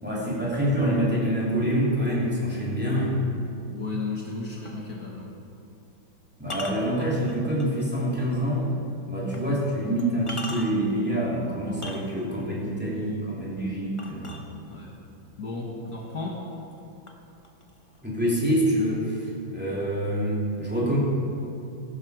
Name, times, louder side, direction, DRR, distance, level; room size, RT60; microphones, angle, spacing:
voice 1, 0.0-3.2 6.4-8.7 9.1-14.3 18.0-21.0, equal, 5° right, -6 dB, 2.7 m, -26 dB
voice 2, 3.7-5.3 14.7-15.0 15.4-16.5, left 3 dB, 55° left, -2 dB, 1.7 m, -34 dB
sound 1, 4.6-4.8 6.4-7.8 8.4-8.5 9.3-9.4 10.0-10.9 11.7-12.4 14.0-14.9 15.8-15.9 16.4-16.8 17.1-18.0, left 1 dB, 25° left, 0.8 m, -39 dB
16.0 x 12.0 x 4.8 m, 2.8 s
omnidirectional pair, 2.2 m